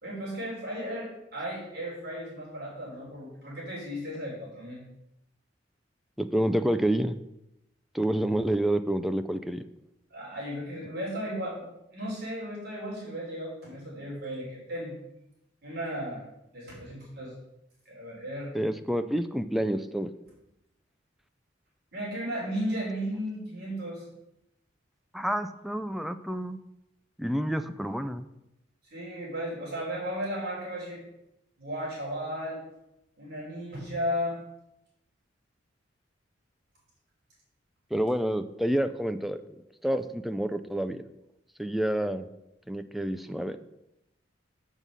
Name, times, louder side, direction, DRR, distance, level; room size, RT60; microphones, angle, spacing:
voice 1, 0.0-4.8 10.1-14.9 15.6-16.2 16.5-17.3 17.8-18.5 21.9-24.0 28.9-31.0 31.6-32.6 33.2-34.4, equal, 55° right, -5 dB, 3.4 m, -35 dB
voice 2, 6.2-7.2 7.9-9.6 18.5-20.1 25.1-26.6 27.2-28.3 37.9-39.4 39.8-41.0 41.6-42.3 42.7-43.6, right 1 dB, ahead, 9 dB, 0.3 m, -28 dB
6.8 x 5.6 x 6.1 m, 0.88 s
head